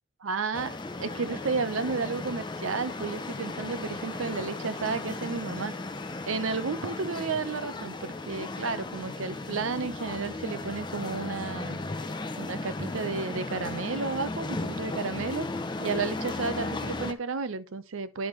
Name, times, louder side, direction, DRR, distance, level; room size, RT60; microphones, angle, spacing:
voice 1, 0.2-5.7 6.3-11.8 12.4-15.5 15.8-18.3, right 4 dB, 65° right, 0.6 m, -32 dB
sound 1, 0.5-17.1, left 2 dB, 20° left, 0.6 m, -36 dB
10.0 x 5.2 x 3.1 m
head